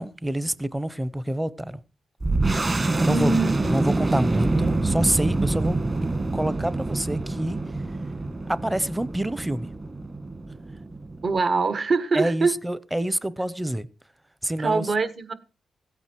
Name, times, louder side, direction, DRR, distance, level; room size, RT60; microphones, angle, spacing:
voice 1, 0.0-1.8 3.0-3.3 3.7-5.8 6.3-7.6 8.5-9.7 12.1-13.9 14.4-14.9, right 1 dB, 10° right, 0.7 m, -26 dB
sound 1, 2.2-11.4, right 2 dB, 35° right, 1.8 m, -26 dB
voice 2, 3.1-3.7 11.2-12.5 14.6-15.3, right 3 dB, 55° right, 1.4 m, -24 dB
16.0 x 9.1 x 4.6 m
cardioid pair, 70°, 0 cm